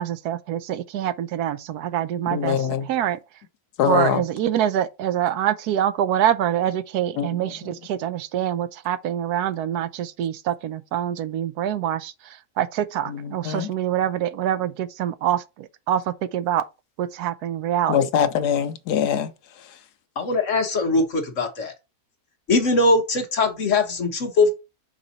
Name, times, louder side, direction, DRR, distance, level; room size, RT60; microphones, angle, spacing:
voice 1, 0.0-3.2 3.8-16.7 17.0-18.1, right 11 dB, 80° right, 1.1 m, -25 dB
voice 2, 2.3-2.9 3.8-4.2 7.2-7.3 13.1-13.7 17.9-19.3, left 8 dB, 85° left, 1.3 m, -23 dB
voice 3, 20.2-21.7 22.5-24.5, left 3 dB, 55° left, 1.4 m, -21 dB
5.9 x 4.1 x 4.0 m
omnidirectional pair, 1.7 m